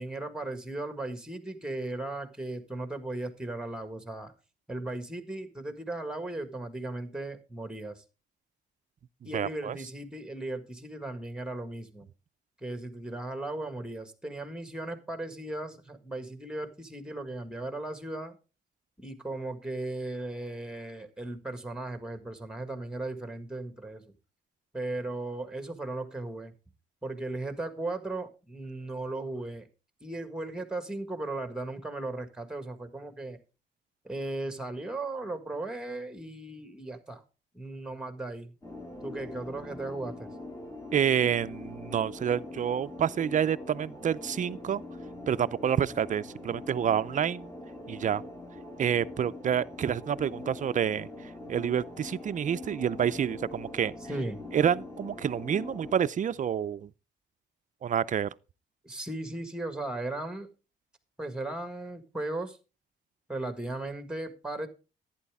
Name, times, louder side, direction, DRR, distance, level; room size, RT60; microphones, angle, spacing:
voice 1, 0.0-4.3 4.7-8.0 9.2-12.1 12.6-18.3 19.0-24.0 24.7-26.5 27.0-29.7 30.0-33.4 34.0-37.2 37.5-38.5 39.0-40.3 54.1-54.4 58.8-60.5 61.2-62.6 63.3-64.7, right 2 dB, 5° right, 1.7 m, -36 dB
voice 2, 9.3-9.8 40.9-44.8 45.3-47.5 47.9-48.2 48.8-51.1 51.5-53.9 54.5-56.9 57.8-58.3, right 8 dB, 40° right, 0.5 m, -28 dB
sound 1, 38.6-55.9, left 2 dB, 15° left, 2.5 m, -43 dB
11.0 x 9.2 x 3.5 m
cardioid pair, 90°, 20 cm